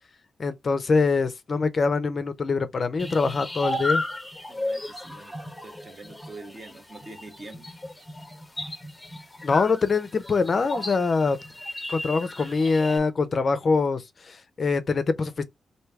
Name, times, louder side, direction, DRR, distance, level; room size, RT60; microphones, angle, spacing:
voice 1, 0.4-4.0 9.4-11.4 11.9-15.4, left 4 dB, 40° left, 0.5 m, -24 dB
sound 1, 3.0-13.0, left 1 dB, 10° left, 0.7 m, -34 dB
voice 2, 4.5-5.4 5.6-7.8, right 2 dB, 35° right, 1.1 m, -44 dB
3.2 x 2.6 x 4.5 m
wide cardioid pair, 130°, 0 cm